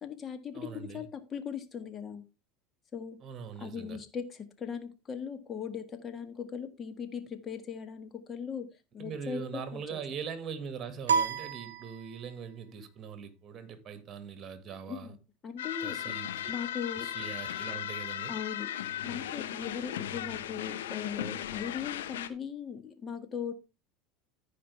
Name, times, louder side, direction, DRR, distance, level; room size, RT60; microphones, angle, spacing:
voice 1, 0.0-2.2 2.9-3.2 3.6-8.7 8.9-10.0 14.9-15.2 15.4-16.2 16.5-17.1 18.3-18.7 19.0-23.5, left 7 dB, 35° left, 1.7 m, -39 dB
voice 2, 0.5-1.0 3.2-4.0 9.0-15.1 15.8-16.3 16.9-18.3, right 6 dB, 40° right, 2.0 m, -41 dB
sound 1, 11.1-12.5, right 6 dB, 90° right, 0.8 m, -31 dB
sound 2, 15.6-22.3, left 11 dB, 80° left, 0.9 m, -37 dB
14.5 x 5.1 x 3.4 m
hypercardioid pair, 85°, 0 cm